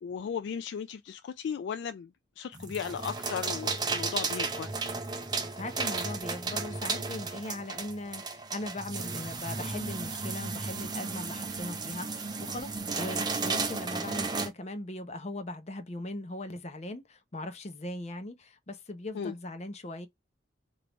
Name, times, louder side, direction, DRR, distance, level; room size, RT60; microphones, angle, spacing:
voice 1, 0.0-2.1 2.4-4.7 19.1-19.3, left 7 dB, 75° left, 0.3 m, -36 dB
sound 1, 2.5-14.5, right 4 dB, 25° right, 0.6 m, -34 dB
voice 2, 5.5-12.7 13.0-20.1, left 1 dB, 35° left, 0.7 m, -39 dB
3.4 x 2.6 x 2.9 m
head